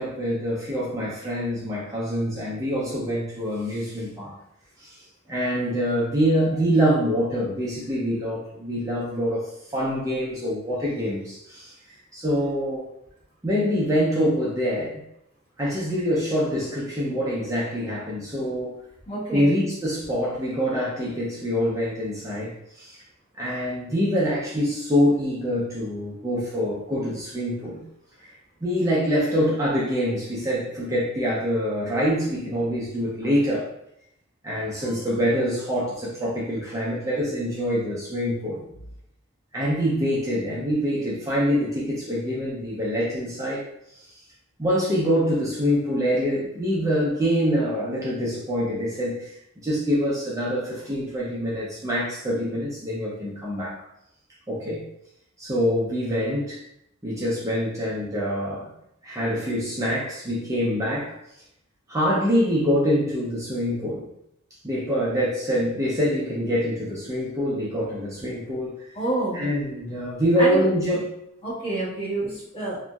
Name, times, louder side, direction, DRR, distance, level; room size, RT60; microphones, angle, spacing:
voice 1, 0.0-4.4 4.8-5.0 5.3-11.7 12.1-12.8 13.4-15.0 15.6-18.7 19.3-23.0 23.4-27.8 28.6-33.7 34.4-38.6 39.5-43.7 44.6-49.3 49.6-53.8 54.5-54.8 55.4-56.6 57.0-58.7 59.0-61.2 61.9-64.1 64.6-68.9 69.3-71.1, equal, 15° right, -6 dB, 0.5 m, -25 dB
voice 2, 19.1-19.6 68.9-69.5 70.4-70.7 71.4-72.8, right 1 dB, 30° left, -8 dB, 1.2 m, -28 dB
2.9 x 2.5 x 2.3 m, 0.77 s
head